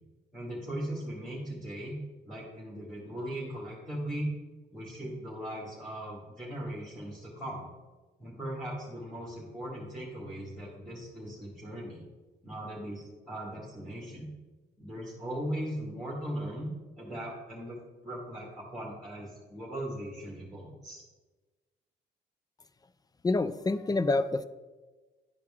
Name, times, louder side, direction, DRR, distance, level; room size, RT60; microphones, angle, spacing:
voice 1, 0.3-2.0 2.3-4.3 4.7-7.7 8.2-12.0 12.4-14.3 14.8-16.7 17.0-17.8 18.0-21.0, right 1 dB, ahead, -5 dB, 2.1 m, -38 dB
voice 2, 23.2-24.4, left 2 dB, 20° left, 14 dB, 0.4 m, -27 dB
11.0 x 4.6 x 3.7 m, 1.2 s
cardioid pair, 90°, 20 cm